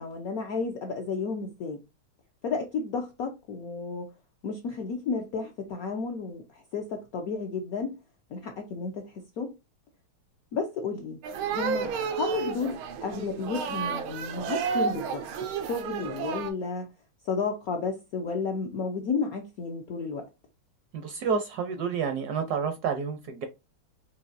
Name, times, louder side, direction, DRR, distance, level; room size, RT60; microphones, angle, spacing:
voice 1, 0.0-1.8 2.4-4.1 4.4-8.0 8.3-9.5 10.5-11.2 11.5-15.3 15.6-16.9 17.2-20.3, left 4 dB, 70° left, 0.8 m, -32 dB
sound 1, 11.2-16.5, right 6 dB, 90° right, 1.6 m, -31 dB
voice 2, 20.9-23.5, right 6 dB, 70° right, 1.0 m, -29 dB
5.4 x 2.8 x 2.5 m
omnidirectional pair, 2.2 m